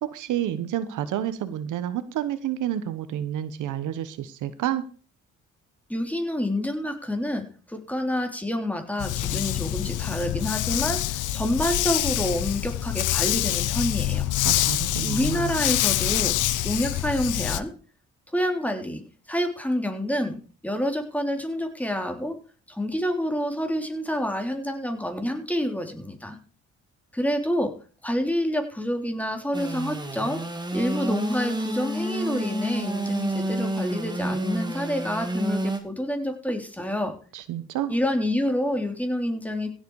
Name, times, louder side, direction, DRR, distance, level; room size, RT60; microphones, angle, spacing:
voice 1, 0.0-4.8 14.4-15.5 37.3-37.9, right 11 dB, 85° right, 13 dB, 1.3 m, -29 dB
voice 2, 5.9-14.3 15.0-16.3 16.6-17.7 18.3-19.0 19.3-22.3 22.7-26.4 27.1-27.7 28.0-30.4 30.7-37.1 37.9-39.7, equal, 5° left, 5 dB, 3.5 m, -28 dB
Dog, 9.0-17.6, left 14 dB, 80° left, 0.9 m, -26 dB
Engine / Sawing, 29.5-35.8, right 1 dB, 15° right, 2.8 m, -29 dB
16.0 x 8.1 x 4.9 m, 0.39 s
cardioid pair, 90°, 30 cm